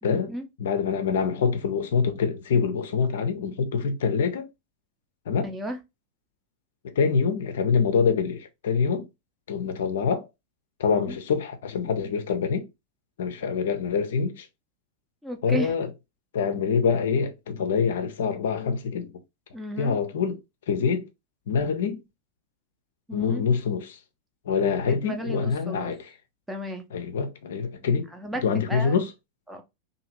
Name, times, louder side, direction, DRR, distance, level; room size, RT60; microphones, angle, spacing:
voice 1, 0.0-0.4 5.4-5.8 10.9-11.2 15.2-15.7 19.5-20.0 23.1-23.4 24.9-25.9 26.5-26.8 28.1-28.9 29.5-29.6, equal, 10° right, 0.6 m, -34 dB
voice 2, 0.6-4.5 5.3-5.5 6.8-9.1 9.5-10.3 10.8-12.7 13.2-14.5 15.4-15.9 16.3-19.1 19.8-20.4 20.7-21.1 21.5-22.0 23.1-24.0 24.5-26.1 26.9-28.1 28.4-29.1, left 6 dB, 60° left, 0.5 m, -25 dB
2.8 x 2.5 x 2.8 m
figure-of-eight pair, 90°, 0 cm